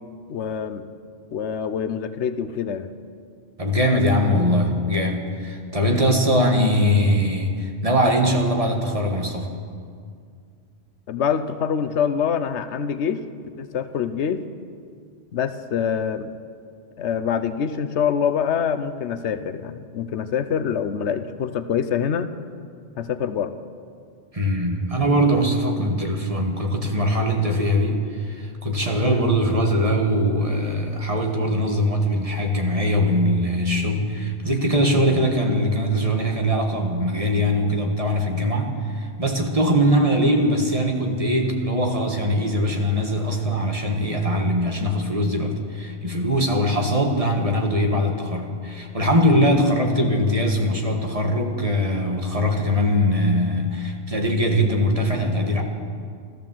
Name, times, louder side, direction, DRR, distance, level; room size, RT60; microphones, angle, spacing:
voice 1, 0.3-0.9 1.3-2.9 11.1-13.2 13.6-14.4 15.3-16.3 17.0-22.3 23.0-23.5 29.0-29.3, left 7 dB, 90° left, 10 dB, 1.1 m, -25 dB
voice 2, 3.6-9.5 24.3-55.6, equal, 35° right, 2 dB, 1.5 m, -21 dB
13.5 x 13.5 x 7.4 m, 2.2 s
omnidirectional pair, 1.1 m